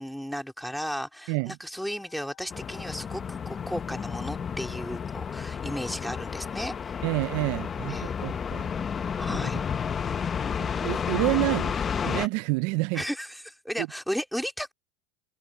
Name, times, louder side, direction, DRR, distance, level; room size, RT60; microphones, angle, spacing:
voice 1, 0.0-6.7 7.9-8.1 9.2-9.6 12.9-14.7, equal, ahead, 2.5 m, -34 dB
sound 1, 1.7-8.0, left 15 dB, 35° left, 5.6 m, -59 dB
sound 2, 2.5-12.3, left 7 dB, 20° left, 0.8 m, -31 dB
voice 2, 7.0-8.7 9.4-9.5 10.6-13.0 13.8-13.9, right 25 dB, 50° right, 0.4 m, -28 dB
supercardioid pair, 160°, 0 cm